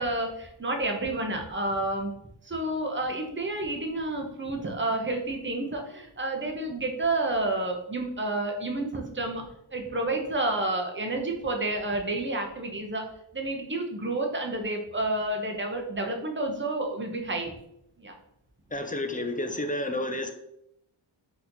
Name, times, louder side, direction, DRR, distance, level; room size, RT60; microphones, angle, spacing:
voice 1, 0.0-2.1 2.4-13.0 13.3-17.6 18.0-18.1, right 2 dB, 25° right, 2 dB, 0.8 m, -30 dB
voice 2, 18.7-20.3, left 1 dB, 20° left, 6 dB, 0.4 m, -30 dB
4.1 x 3.0 x 3.9 m, 0.77 s
wide cardioid pair, 115°, 48 cm